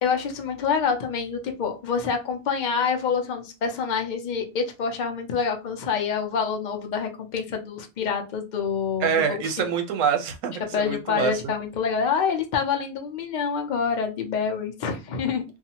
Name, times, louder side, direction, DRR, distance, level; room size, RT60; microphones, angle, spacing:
voice 1, 0.0-9.7 10.7-15.4, left 6 dB, 55° left, 0.5 m, -27 dB
voice 2, 9.0-11.4, right 7 dB, 85° right, 1.0 m, -25 dB
2.6 x 2.4 x 2.7 m
omnidirectional pair, 1.3 m